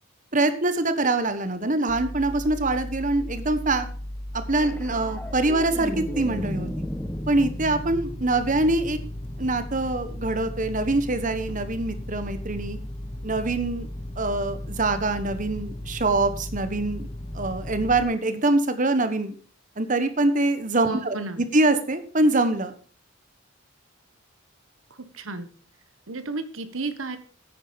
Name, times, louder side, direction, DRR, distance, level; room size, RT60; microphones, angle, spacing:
voice 1, 0.3-3.9 4.5-6.9 7.3-9.0 9.4-12.8 13.2-13.9 14.2-17.1 17.3-19.3 19.8-22.7, right 2 dB, 40° right, 10 dB, 1.2 m, -24 dB
sound 1, 1.9-18.0, left 1 dB, 30° left, 1.3 m, -36 dB
sound 2, 4.6-9.1 11.5-11.7, equal, 5° left, 0.6 m, -35 dB
voice 2, 20.8-21.4 24.9-25.5 26.1-27.2, right 3 dB, 75° right, 10 dB, 1.4 m, -32 dB
9.9 x 9.4 x 5.3 m, 0.42 s
head